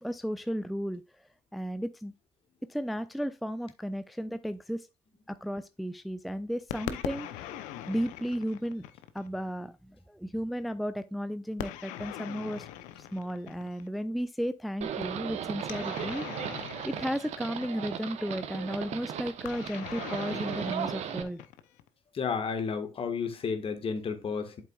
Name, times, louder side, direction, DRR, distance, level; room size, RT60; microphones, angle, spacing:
voice 1, 0.0-2.1 2.7-4.9 5.3-8.8 9.1-12.7 13.0-16.5 16.9-21.4, equal, ahead, 0.4 m, -34 dB
sound 1, 6.7-9.4 11.6-14.0 15.6-18.1 19.4-21.9, left 11 dB, 75° left, 0.7 m, -41 dB
Livestock farm animals working animals, 14.8-21.2, right 9 dB, 60° right, 1.0 m, -36 dB
voice 2, 22.1-24.6, left 5 dB, 45° left, 1.6 m, -32 dB
8.2 x 7.4 x 2.4 m
hypercardioid pair, 60°, 13 cm